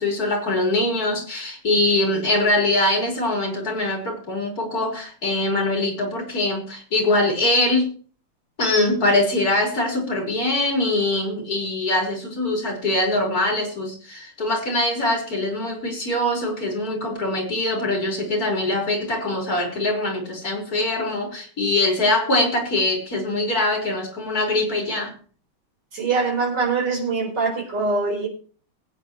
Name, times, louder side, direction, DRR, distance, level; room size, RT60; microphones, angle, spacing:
voice 1, 0.0-7.9 8.6-25.1, left 2 dB, 45° left, 4.8 m, -23 dB
voice 2, 25.9-28.3, right 4 dB, 55° right, 5.2 m, -23 dB
21.0 x 9.1 x 3.1 m
omnidirectional pair, 2.3 m